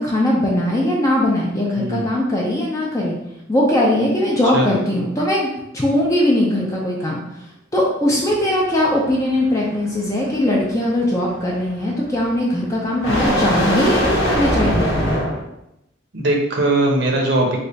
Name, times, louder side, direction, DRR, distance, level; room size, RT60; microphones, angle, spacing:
voice 1, 0.0-3.2 3.5-5.5 5.7-7.2 7.7-14.9, left 1 dB, 15° left, -4 dB, 0.5 m, -20 dB
voice 2, 1.8-2.1 4.5-4.7 16.1-17.6, right 1 dB, 60° right, 0 dB, 0.8 m, -19 dB
sound 1, 8.1-15.4, equal, 80° left, 0.9 m, -22 dB
3.2 x 2.4 x 3.9 m, 0.84 s
head